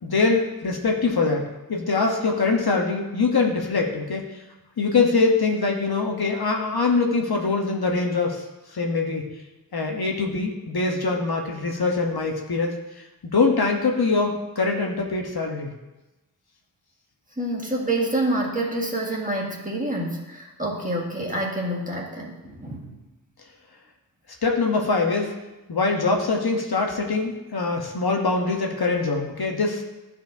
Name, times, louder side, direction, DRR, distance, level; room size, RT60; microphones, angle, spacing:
voice 1, 0.0-4.2 4.8-8.4 8.7-9.3 9.7-15.7 24.4-25.3 25.7-29.8, left 3 dB, 80° left, 1 dB, 1.0 m, -23 dB
voice 2, 17.4-23.0, right 1 dB, 20° right, -2 dB, 1.6 m, -27 dB
11.5 x 4.4 x 2.6 m, 1.0 s
wide cardioid pair, 40°, 37 cm